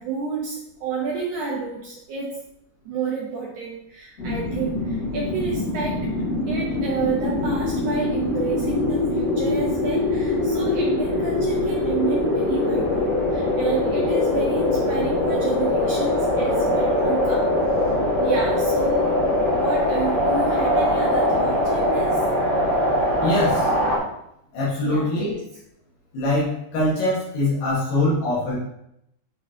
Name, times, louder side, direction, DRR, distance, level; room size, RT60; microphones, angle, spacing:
voice 1, 0.0-2.4 2.8-6.1 6.5-17.5 18.2-22.2 24.8-25.4, right 4 dB, 85° right, -3 dB, 1.7 m, -30 dB
sound 1, 4.2-24.0, left 1 dB, 35° left, 1.0 m, -22 dB
voice 2, 23.2-23.7 24.5-25.4 26.1-28.6, left 1 dB, 75° left, -8 dB, 3.5 m, -23 dB
9.5 x 4.1 x 2.7 m, 0.78 s
omnidirectional pair, 4.7 m